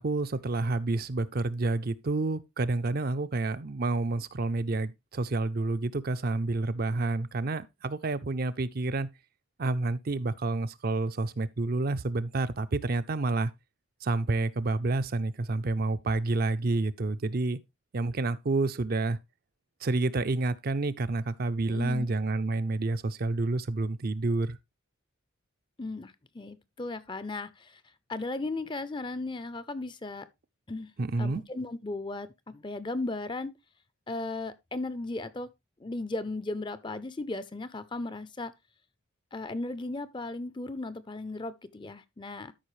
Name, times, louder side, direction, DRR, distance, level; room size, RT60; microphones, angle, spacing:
voice 1, 0.0-9.1 9.6-13.5 14.0-17.6 17.9-19.2 19.8-24.6 31.0-31.4, right 2 dB, 45° right, 0.5 m, -29 dB
voice 2, 21.7-22.1 25.8-27.8 28.1-30.3 30.7-30.9 31.2-33.5 34.1-35.5 35.8-38.5 39.3-42.5, left 2 dB, 20° left, 0.5 m, -36 dB
13.0 x 5.5 x 3.1 m
head